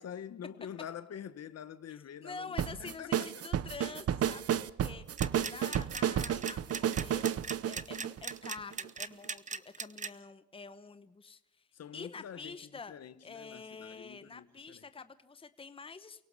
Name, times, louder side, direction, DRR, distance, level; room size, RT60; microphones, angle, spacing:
voice 1, 0.0-3.4 11.7-14.8, left 9 dB, 55° left, 1.4 m, -46 dB
voice 2, 2.2-5.1 5.4-11.7 11.9-13.0 13.2-16.3, left 4 dB, 20° left, 1.0 m, -47 dB
sound 1, 2.6-8.9, right 10 dB, 50° right, 0.8 m, -32 dB
sound 2, 5.1-10.1, right 5 dB, 25° right, 0.9 m, -39 dB
29.0 x 17.5 x 5.6 m
cardioid pair, 90°, 30 cm